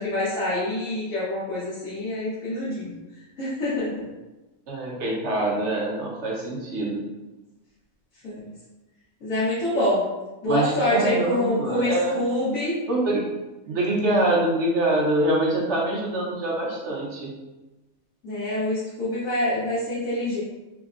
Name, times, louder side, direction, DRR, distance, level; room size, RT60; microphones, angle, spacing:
voice 1, 0.0-3.0 3.4-4.0 8.2-8.5 9.2-10.0 10.4-12.8 18.2-20.4, left 1 dB, 80° left, -11 dB, 1.3 m, -26 dB
voice 2, 4.7-7.0 10.4-12.2 12.9-13.2 13.7-17.3, right 1 dB, 65° right, -4 dB, 0.9 m, -24 dB
3.4 x 2.0 x 2.4 m, 1.1 s
omnidirectional pair, 1.4 m